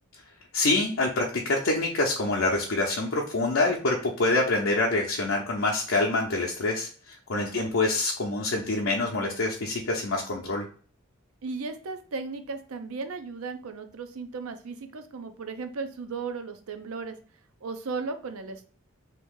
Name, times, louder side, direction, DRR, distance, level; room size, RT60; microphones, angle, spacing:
voice 1, 0.5-10.6, left 2 dB, 65° left, -1 dB, 0.6 m, -26 dB
voice 2, 7.3-7.7 11.4-17.2 17.6-18.7, right 4 dB, 90° right, 7 dB, 0.5 m, -36 dB
2.8 x 2.6 x 3.6 m, 0.43 s
head